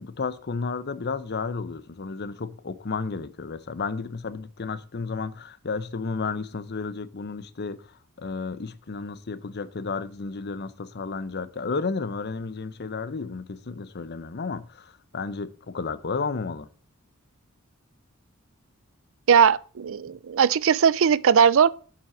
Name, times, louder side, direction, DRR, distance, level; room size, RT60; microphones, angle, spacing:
voice 1, 0.0-7.9 8.2-16.7, left 4 dB, 50° left, 0.7 m, -32 dB
voice 2, 19.3-21.7, right 7 dB, 65° right, 0.5 m, -19 dB
8.0 x 5.8 x 7.2 m
head